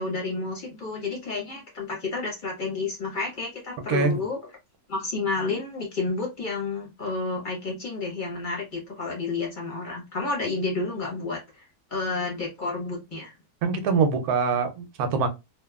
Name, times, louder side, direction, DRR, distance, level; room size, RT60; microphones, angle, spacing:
voice 1, 0.0-4.4 4.9-11.6 11.9-13.3, left 3 dB, 35° left, 0.9 m, -30 dB
voice 2, 3.9-4.2 13.6-15.3, right 5 dB, 80° right, 1.1 m, -23 dB
2.9 x 2.2 x 2.2 m
omnidirectional pair, 1.6 m